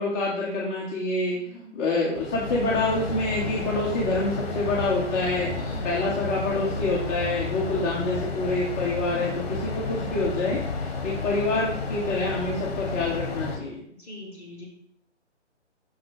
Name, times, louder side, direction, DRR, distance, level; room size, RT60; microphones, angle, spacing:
voice 1, 0.0-1.4 1.7-13.8, left 2 dB, 15° left, -5 dB, 0.8 m, -27 dB
voice 2, 1.4-1.7 5.5-5.9 14.0-14.7, left 1 dB, 5° right, -7 dB, 2.4 m, -43 dB
sound 1, 2.1-13.6, left 4 dB, 35° left, 1.5 m, -32 dB
6.3 x 5.8 x 5.1 m, 0.68 s
figure-of-eight pair, 140°, 36 cm